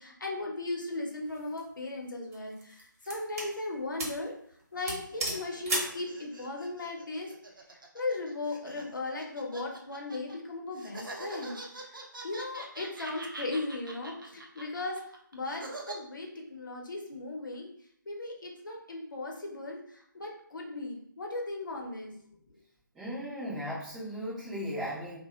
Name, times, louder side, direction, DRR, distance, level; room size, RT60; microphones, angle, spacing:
voice 1, 0.0-4.3 4.7-7.3 7.7-12.0 12.2-17.7 18.1-22.2, left 2 dB, 70° left, 0 dB, 0.7 m, -37 dB
sound 1, 1.3-1.6 2.3-3.5 4.0-4.2 4.5-4.6 4.9-6.0, right 1 dB, 45° right, 0.7 m, -34 dB
sound 2, 5.0-10.4 10.8-16.0, right 2 dB, 75° right, 0.6 m, -45 dB
voice 2, 22.9-25.2, equal, 5° right, -8 dB, 0.3 m, -36 dB
2.6 x 2.1 x 2.3 m, 0.67 s
figure-of-eight pair, 150°, 11 cm